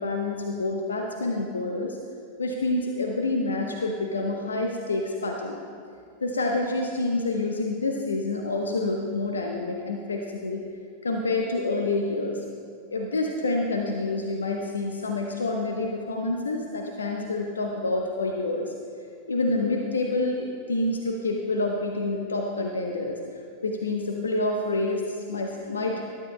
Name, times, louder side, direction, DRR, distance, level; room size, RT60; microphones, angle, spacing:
voice 1, 0.0-2.0 2.4-5.6 6.2-10.6 11.0-12.4 12.9-18.7 19.3-23.2 23.6-26.0, left 2 dB, 75° left, 1 dB, 0.9 m, -28 dB
19.5 x 11.5 x 2.2 m, 2.2 s
figure-of-eight pair, 90°, 0 cm